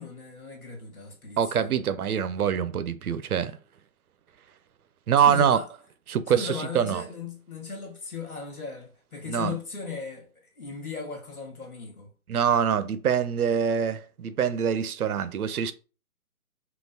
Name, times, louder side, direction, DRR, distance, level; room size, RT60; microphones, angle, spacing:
voice 1, 0.0-1.8 5.2-5.7 6.3-12.1, left 5 dB, 80° left, 1.7 m, -37 dB
voice 2, 1.4-3.5 5.1-5.6 6.1-7.0 9.3-9.5 12.3-15.7, right 8 dB, 80° right, 0.6 m, -24 dB
3.7 x 2.3 x 2.7 m
hypercardioid pair, 155°, 43 cm